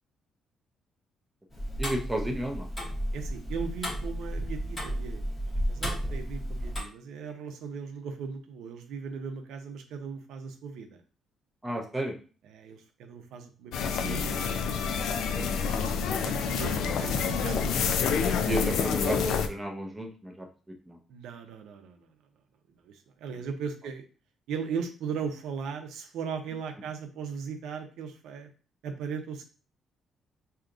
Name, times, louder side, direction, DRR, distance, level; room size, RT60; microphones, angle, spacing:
Tick-tock, 1.5-6.8, equal, 15° left, 0.9 m, -33 dB
voice 1, 1.8-2.7 11.6-12.1 15.1-15.5 16.9-17.0 18.5-20.5 20.9-21.0, right 1 dB, 5° right, 1 dB, 0.6 m, -33 dB
voice 2, 3.1-11.0 12.4-14.7 15.7-18.4 21.1-22.1 22.8-24.0 24.5-28.5 28.8-29.4, right 6 dB, 80° right, 5 dB, 0.6 m, -38 dB
sound 1, 13.7-19.5, left 6 dB, 70° left, 0.4 m, -28 dB
4.7 x 2.8 x 2.5 m, 0.37 s
cardioid pair, 170°, 0 cm